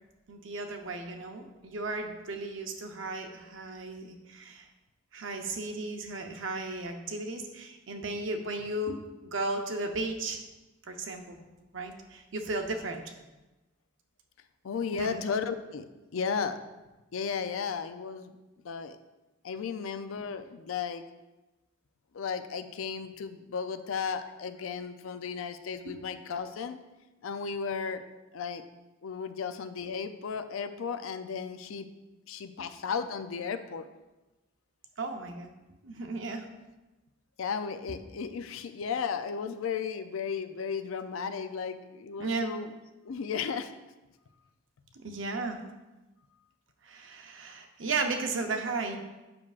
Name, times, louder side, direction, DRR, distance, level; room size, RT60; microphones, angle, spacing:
voice 1, 0.3-4.7 5.1-10.4 10.9-11.4 11.7-13.0 14.9-15.2 25.9-26.0 35.0-35.5 35.8-36.5 42.2-42.5 44.9-45.6 46.8-49.0, right 3 dB, 65° right, 4 dB, 0.7 m, -35 dB
voice 2, 14.6-15.8 16.1-16.6 17.1-18.3 18.6-19.0 19.4-21.0 22.1-26.8 27.2-28.0 28.3-28.6 29.0-31.9 32.3-33.9 37.4-42.7 43.0-43.7, left 6 dB, 80° left, 10 dB, 0.4 m, -34 dB
7.7 x 6.0 x 2.4 m, 1.1 s
head